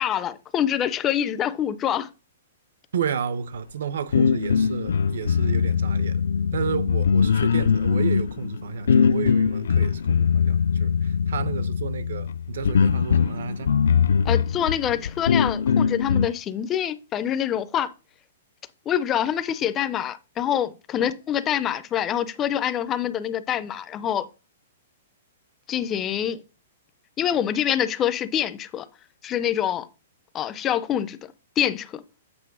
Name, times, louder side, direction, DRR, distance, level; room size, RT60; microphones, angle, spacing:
voice 1, 0.0-2.1 14.3-17.9 18.9-24.3 25.7-26.4 27.2-28.9 29.2-29.9 30.3-31.2 31.6-32.0, left 10 dB, 15° left, 0.4 m, -25 dB
voice 2, 2.9-6.2 6.5-13.7, right 7 dB, 65° right, 0.6 m, -31 dB
sound 1, 4.1-16.3, left 6 dB, 85° left, 0.3 m, -22 dB
8.0 x 3.1 x 5.9 m
hypercardioid pair, 180°, 0 cm